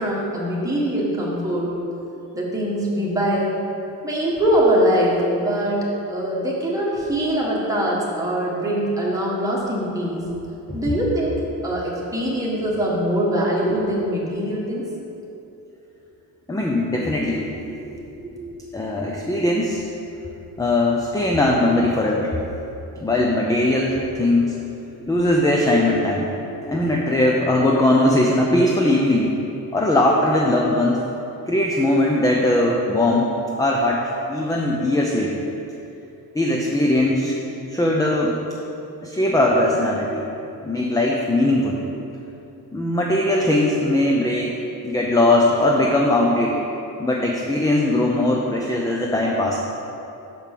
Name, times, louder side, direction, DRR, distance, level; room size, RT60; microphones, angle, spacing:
voice 1, 0.0-1.7 2.3-3.5 4.0-10.3 10.7-11.3 11.6-14.8 17.9-18.4 24.9-25.2 26.7-26.8, right 1 dB, 10° right, -5 dB, 1.5 m, -23 dB
voice 2, 16.5-17.5 18.7-19.8 20.6-22.4 23.0-24.6 25.1-26.3 26.7-29.3 29.7-31.0 31.5-33.3 33.6-35.4 36.3-37.4 37.7-38.4 39.0-40.3 40.6-41.8 42.7-44.6 44.8-46.7 47.0-49.6, left 1 dB, 10° left, -1 dB, 0.5 m, -20 dB
6.0 x 5.3 x 6.6 m, 2.9 s
cardioid pair, 140°, 38 cm